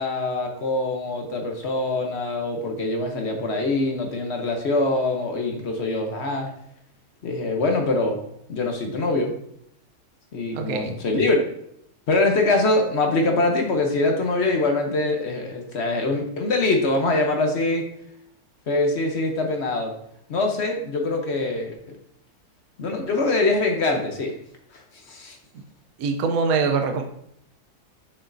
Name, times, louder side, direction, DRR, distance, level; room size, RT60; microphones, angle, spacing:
voice 1, 0.0-6.5 7.2-8.2 8.5-9.3 10.3-11.4 12.1-17.8 18.7-19.9 20.3-21.7 22.8-24.3 24.7-24.8 25.1-25.4, left 2 dB, 50° left, 3 dB, 1.0 m, -23 dB
voice 2, 10.5-10.9 26.0-27.0, right 4 dB, 75° right, 5 dB, 1.1 m, -23 dB
6.3 x 5.9 x 2.6 m, 0.72 s
omnidirectional pair, 1.6 m